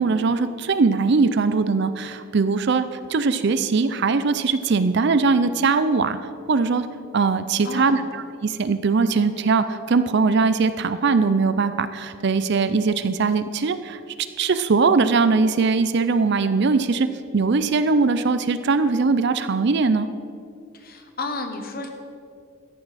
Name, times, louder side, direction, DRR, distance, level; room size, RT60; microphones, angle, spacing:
voice 1, 0.0-6.2 6.5-6.9 7.1-8.0 8.4-14.0 14.4-17.1 17.3-20.1, right 4 dB, 50° right, 12 dB, 0.5 m, -20 dB
voice 2, 7.6-8.1 20.7-21.9, left 3 dB, 45° left, 5 dB, 1.2 m, -32 dB
13.5 x 11.0 x 4.2 m, 2.4 s
head